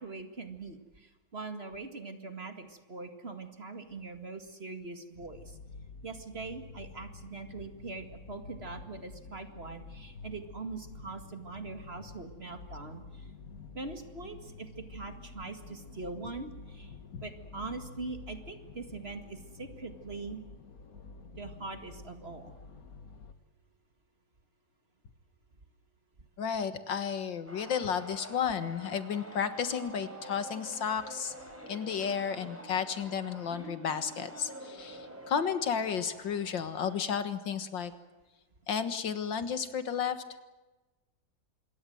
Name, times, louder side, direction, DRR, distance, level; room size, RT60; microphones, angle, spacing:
voice 1, 0.0-5.6 6.0-13.3 13.7-20.4 21.4-22.5, right 3 dB, 35° right, 7 dB, 2.1 m, -42 dB
sound 1, 5.1-23.3, left 4 dB, 50° left, 1.9 m, -49 dB
voice 2, 26.4-31.3 31.7-37.9 38.7-40.2, left 7 dB, 75° left, 11 dB, 2.2 m, -32 dB
sound 2, 27.5-37.0, right 1 dB, 5° right, 4.9 m, -48 dB
26.5 x 22.5 x 7.9 m, 1.1 s
omnidirectional pair, 2.0 m